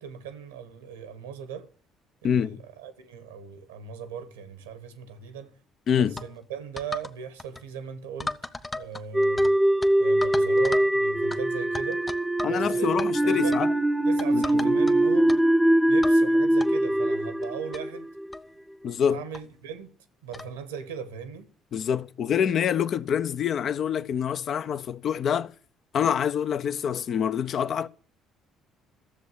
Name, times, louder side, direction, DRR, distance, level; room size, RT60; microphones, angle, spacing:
voice 1, 0.0-1.7 2.2-5.5 5.9-8.4 8.7-9.5 10.0-12.0 12.5-13.0 13.2-13.7 14.0-15.4 15.9-18.1 19.1-19.9 20.2-21.5, right 7 dB, 90° right, 1.4 m, -38 dB
voice 2, 2.2-2.6 5.9-6.1 12.4-13.7 14.3-14.7 18.8-19.2 21.7-25.5 25.9-27.9, left 8 dB, 55° left, 0.7 m, -26 dB
sound 1, 6.2-6.3 6.8-7.1 7.4-7.6 8.2-9.5 9.8-9.9 10.2-10.9 11.3-11.4 11.7-12.6 12.8-13.1 13.5-13.7 14.2-14.9 15.3-15.4 16.0-16.2 16.6-16.7 17.4-17.5 17.7-17.8 18.3-18.5 19.3-19.4 20.3-20.5, left 2 dB, 20° left, 1.1 m, -35 dB
sound 2, 9.1-18.4, right 1 dB, 5° right, 0.7 m, -22 dB
13.5 x 7.3 x 8.0 m
hypercardioid pair, 55°, 0 cm